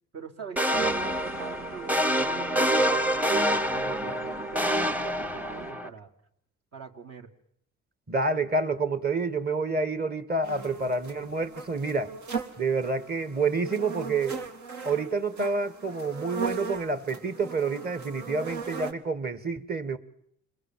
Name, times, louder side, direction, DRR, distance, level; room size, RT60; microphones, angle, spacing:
voice 1, 0.1-6.1 6.7-7.3, right 6 dB, 55° right, 3.4 m, -43 dB
sound 1, 0.6-5.9, equal, 5° right, 1.0 m, -26 dB
sound 2, 0.7-5.7, right 5 dB, 90° right, 4.2 m, -44 dB
voice 2, 8.1-12.1 12.6-14.4 14.8-20.0, right 3 dB, 30° right, 2.1 m, -28 dB
sound 3, 10.4-18.9, right 5 dB, 70° right, 3.1 m, -38 dB
28.5 x 21.5 x 7.7 m
cardioid pair, 90°, 30 cm